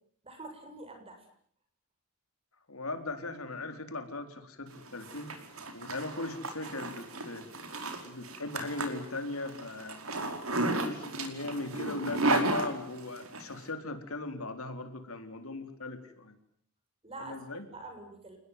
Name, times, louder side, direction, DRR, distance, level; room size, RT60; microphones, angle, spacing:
voice 1, 0.2-1.2 17.0-17.4 17.7-18.4, right 2 dB, 25° right, 5 dB, 7.5 m, -45 dB
voice 2, 2.7-5.3 5.7-7.5 8.0-10.0 10.6-16.4 17.2-17.7, left 2 dB, 85° left, 8 dB, 4.1 m, -38 dB
Zipper (clothing), 4.7-13.4, right 2 dB, 75° right, 5.1 m, -34 dB
29.0 x 20.5 x 9.5 m, 0.63 s
head